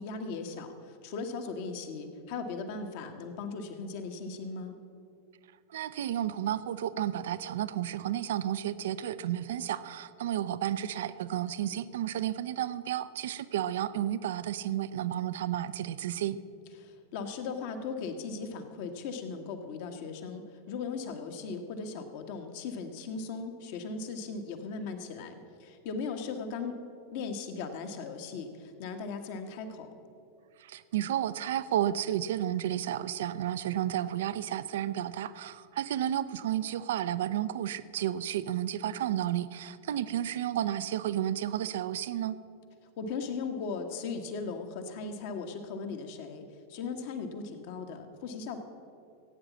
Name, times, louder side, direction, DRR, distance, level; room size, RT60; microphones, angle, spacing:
voice 1, 0.0-4.7 16.8-20.4 20.7-26.7 27.1-29.9 43.0-46.4 46.7-48.6, left 4 dB, 50° left, 6 dB, 1.5 m, -38 dB
voice 2, 5.7-16.4 30.6-42.4, right 11 dB, 60° right, 15 dB, 0.5 m, -32 dB
16.5 x 9.0 x 7.2 m, 2.5 s
figure-of-eight pair, 90°, 0 cm